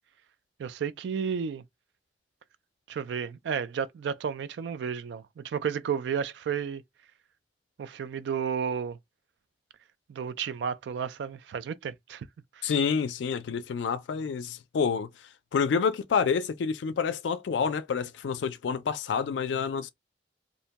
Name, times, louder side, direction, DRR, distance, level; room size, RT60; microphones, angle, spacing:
voice 1, 0.6-1.6 2.9-6.8 7.8-9.0 10.1-12.3 12.6-12.7, right 7 dB, 75° right, 0.3 m, -32 dB
voice 2, 12.6-15.1 15.5-19.9, left 6 dB, 90° left, 0.4 m, -28 dB
2.5 x 2.1 x 2.7 m
head